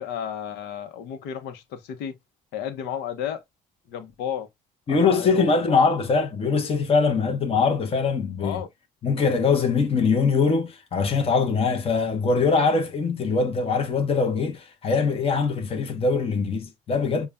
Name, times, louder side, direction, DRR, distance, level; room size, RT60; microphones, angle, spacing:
voice 1, 0.0-2.1 2.5-3.4 3.9-4.5 4.9-5.8 8.4-8.7, left 9 dB, 90° left, 0.9 m, -32 dB
voice 2, 4.9-8.6 9.0-17.3, left 4 dB, 35° left, 1.0 m, -22 dB
6.7 x 2.4 x 2.3 m
cardioid pair, 110°, 17 cm